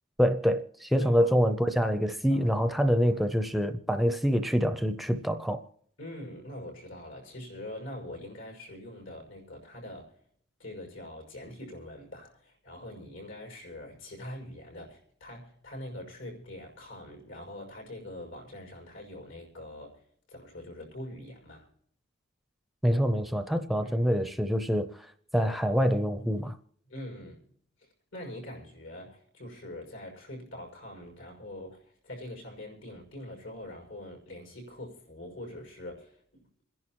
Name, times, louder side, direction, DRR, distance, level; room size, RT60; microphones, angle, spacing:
voice 1, 0.2-5.6 22.8-25.1 25.3-26.6, equal, ahead, 0.5 m, -26 dB
voice 2, 1.0-1.4 2.3-2.5 3.0-3.3 6.0-10.2 10.6-20.0 20.3-21.7 23.8-24.1 26.9-27.5 27.8-36.6, left 1 dB, 80° left, 6.1 m, -44 dB
27.5 x 11.0 x 3.0 m
head